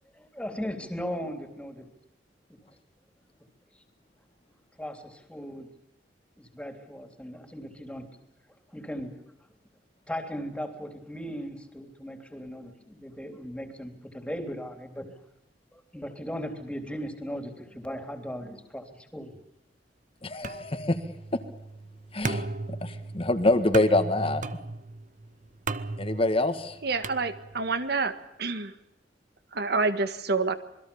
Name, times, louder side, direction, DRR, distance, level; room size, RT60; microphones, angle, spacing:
voice 1, 0.1-1.9 4.8-5.7 6.4-8.1 8.7-9.2 10.1-15.1 15.7-19.4, equal, 5° left, 6 dB, 3.3 m, -37 dB
voice 2, 20.2-21.0 22.1-22.5 22.8-24.4 26.0-26.7, left 2 dB, 35° left, 8 dB, 1.8 m, -25 dB
sound 1, 20.4-27.8, right 3 dB, 45° right, 1.1 m, -37 dB
voice 3, 26.8-28.7 29.5-30.5, right 3 dB, 65° right, 10 dB, 1.7 m, -28 dB
27.0 x 21.5 x 7.1 m, 0.83 s
head